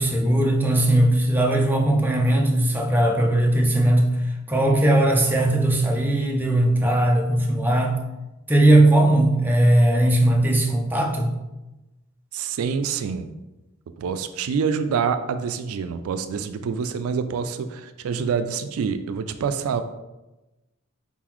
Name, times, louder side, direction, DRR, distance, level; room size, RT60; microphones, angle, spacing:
voice 1, 0.0-8.0 8.5-11.3, right 1 dB, 10° right, 0 dB, 0.5 m, -19 dB
voice 2, 12.3-13.3 14.0-19.8, right 6 dB, 80° right, 10 dB, 0.3 m, -26 dB
4.1 x 3.8 x 3.0 m, 1.0 s
head